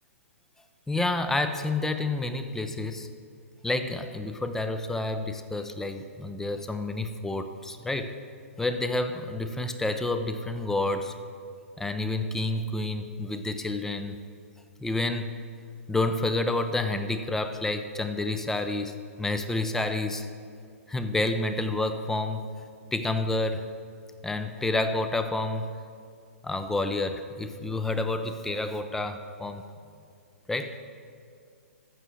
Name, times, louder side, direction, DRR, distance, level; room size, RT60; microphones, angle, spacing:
voice 1, 0.9-3.1 3.6-8.1 8.6-11.1 11.8-14.2 14.8-15.3 15.9-20.3 20.9-22.5 22.9-23.7 24.2-25.7 26.4-29.6 30.5-30.8, left 2 dB, 5° left, 9 dB, 0.6 m, -29 dB
12.5 x 8.2 x 6.4 m, 2.3 s
hypercardioid pair, 130°, 8 cm